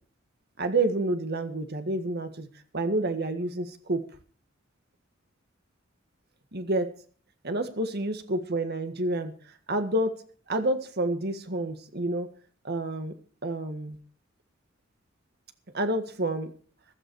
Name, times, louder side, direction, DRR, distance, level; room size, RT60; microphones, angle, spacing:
voice 1, 0.6-2.5 2.7-4.0 6.5-6.9 7.4-9.3 9.7-10.2 10.5-12.3 12.6-13.1 13.4-14.0 15.7-16.5, right 2 dB, 55° right, 8 dB, 1.7 m, -28 dB
15.5 x 12.5 x 4.7 m, 0.43 s
head